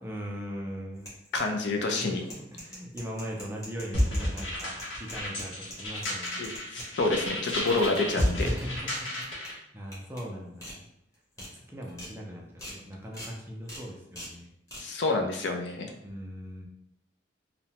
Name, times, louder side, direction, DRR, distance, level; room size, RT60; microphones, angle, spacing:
voice 1, 0.0-1.1 1.9-6.5 6.8-7.1 8.4-10.8 11.4-14.5 16.0-16.7, equal, 10° right, -1 dB, 0.3 m, -40 dB
sound 1, 1.0-1.7 2.1-6.9 7.3-8.6 8.9-9.5 9.9-10.2 10.6-10.7 11.1-11.5 11.9-12.1 12.6-12.8 13.1-13.3 13.7-13.8 14.1-14.3 14.7-14.8, equal, 15° left, 0.8 m, -43 dB
voice 2, 1.3-2.2 6.4-8.5 14.8-15.9, left 3 dB, 65° left, 3 dB, 0.4 m, -28 dB
sound 2, 3.9-9.6, left 1 dB, 85° left, 0.9 m, -31 dB
2.8 x 2.1 x 2.8 m, 0.78 s
head